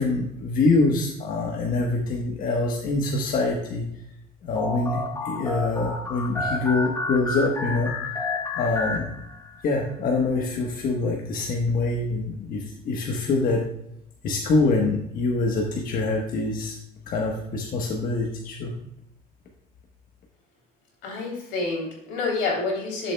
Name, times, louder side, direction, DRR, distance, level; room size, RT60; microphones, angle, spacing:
voice 1, 0.0-3.8 4.4-7.9 8.6-9.1 9.6-13.6 14.2-16.8 17.1-18.7, left 3 dB, 55° left, 0 dB, 1.3 m, -25 dB
sound 1, 4.6-9.7, left 3 dB, 15° left, 1.4 m, -30 dB
voice 2, 21.0-23.1, left 3 dB, 90° left, -1 dB, 3.3 m, -28 dB
11.5 x 7.1 x 2.3 m, 0.79 s
cardioid pair, 110°, 17 cm